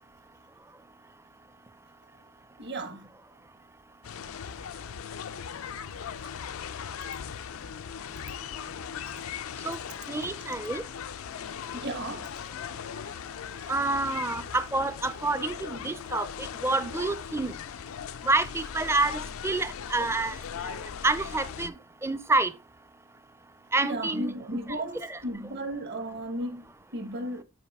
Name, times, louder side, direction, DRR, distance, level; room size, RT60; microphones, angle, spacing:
voice 1, 2.6-3.1 9.0-9.3 11.7-12.3 21.6-21.7 23.8-27.4, right 1 dB, 55° right, 1.2 m, -35 dB
sound 1, 4.0-21.7, left 8 dB, 80° left, 0.4 m, -39 dB
voice 2, 10.1-10.8 13.7-16.3 16.6-17.5 18.2-20.4 20.6-20.8 21.0-21.7 22.0-22.5 23.7-24.3 25.0-25.2, right 2 dB, 10° right, 0.4 m, -28 dB
8.7 x 4.7 x 3.5 m
head